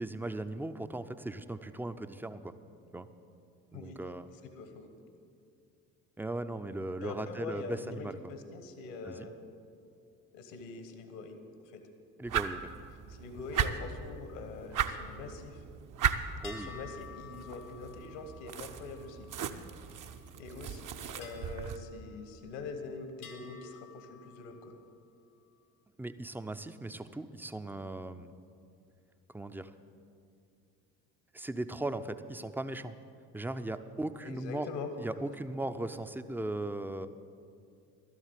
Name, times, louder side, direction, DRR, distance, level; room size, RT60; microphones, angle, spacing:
voice 1, 0.0-2.5 2.9-3.1 3.7-4.3 6.2-8.3 9.0-9.3 12.2-12.7 16.4-16.7 26.0-28.3 29.3-29.7 31.3-32.9 33.3-34.7 35.0-37.1, right 2 dB, 5° right, 10 dB, 0.5 m, -38 dB
voice 2, 4.5-4.9 7.0-9.3 10.3-11.4 11.7-11.8 13.1-15.6 16.0-16.1 16.5-19.3 20.4-24.8 34.2-34.9, left 4 dB, 70° left, 8 dB, 1.3 m, -44 dB
sound 1, 12.3-21.8, right 8 dB, 45° right, 0.7 m, -37 dB
sound 2, 16.4-20.1 21.2-22.8 23.2-24.9, left 6 dB, 90° left, 1.4 m, -52 dB
12.5 x 7.6 x 8.3 m, 2.4 s
figure-of-eight pair, 50°, 44 cm